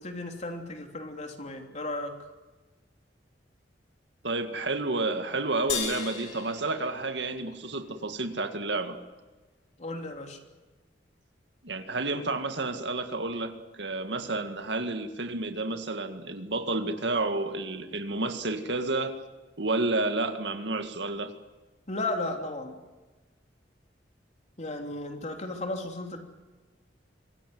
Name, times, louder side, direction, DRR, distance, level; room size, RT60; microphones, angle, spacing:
voice 1, 0.0-2.1 9.8-10.4 21.9-22.8 24.6-26.2, left 2 dB, 40° left, 4 dB, 3.2 m, -34 dB
voice 2, 4.2-9.0 11.6-13.5 13.8-19.1 19.6-21.3, right 2 dB, 65° right, 8 dB, 1.9 m, -30 dB
sound 1, 5.7-8.3, left 7 dB, 75° left, 6.3 m, -37 dB
25.0 x 17.0 x 9.5 m, 1.2 s
head